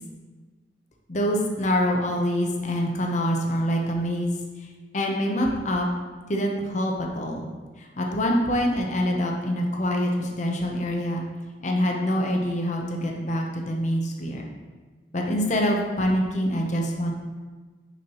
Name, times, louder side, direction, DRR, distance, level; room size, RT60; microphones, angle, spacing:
voice 1, 1.1-4.4 4.9-5.9 6.3-7.5 7.8-11.2 11.6-14.4 15.1-17.1, equal, 45° left, 1 dB, 0.8 m, -25 dB
5.9 x 5.4 x 3.0 m, 1.4 s
head